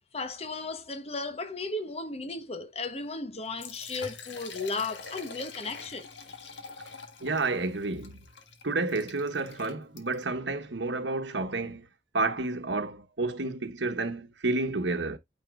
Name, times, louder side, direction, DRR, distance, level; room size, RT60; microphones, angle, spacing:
voice 1, 0.1-6.1, left 3 dB, 35° left, 1.1 m, -35 dB
Liquid, 3.4-10.3, left 4 dB, 80° left, 1.6 m, -45 dB
voice 2, 7.2-8.2 8.6-11.9 12.1-15.2, right 3 dB, 85° right, 1.2 m, -30 dB
9.3 x 4.5 x 2.5 m
head